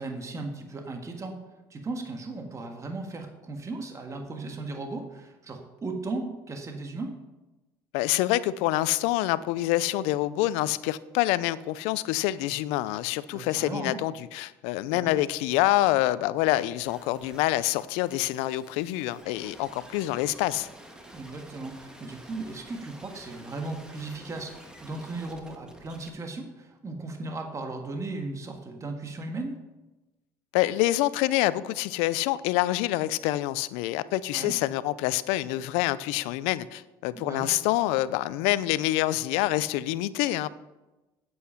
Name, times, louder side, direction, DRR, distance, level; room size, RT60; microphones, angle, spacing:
voice 1, 0.0-1.4 1.7-7.2 13.3-14.0 14.9-15.1 21.1-29.6 34.3-34.6 37.1-37.5, right 3 dB, 30° right, 4 dB, 1.6 m, -36 dB
voice 2, 7.9-20.7 30.5-40.5, left 16 dB, 80° left, 17 dB, 0.5 m, -26 dB
sound 1, 16.4-26.1, right 1 dB, 5° right, 1.8 m, -50 dB
8.4 x 8.0 x 5.7 m, 1.1 s
supercardioid pair, 80°, 10 cm